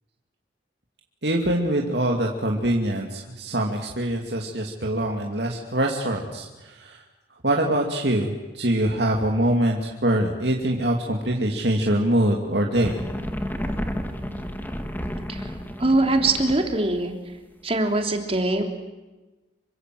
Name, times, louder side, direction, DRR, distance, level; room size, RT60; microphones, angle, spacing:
voice 1, 1.2-7.0 7.4-13.0, right 1 dB, 65° right, 1 dB, 2.6 m, -24 dB
sound 1, 12.8-16.8, equal, 10° left, 2.0 m, -31 dB
voice 2, 15.8-17.1 17.6-18.6, right 2 dB, 30° right, 4 dB, 3.3 m, -22 dB
27.0 x 25.0 x 7.8 m, 1.1 s
head